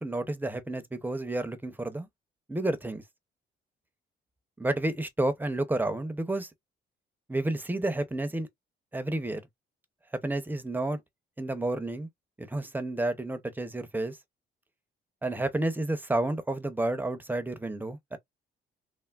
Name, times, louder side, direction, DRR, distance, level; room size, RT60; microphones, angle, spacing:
voice 1, 0.0-2.1 2.5-3.0 4.6-6.5 7.3-8.5 8.9-9.4 10.2-11.0 11.4-12.1 12.4-14.2 15.2-18.2, right 2 dB, 10° right, 0.5 m, -30 dB
3.4 x 2.0 x 2.3 m
cardioid pair, 90°, 20 cm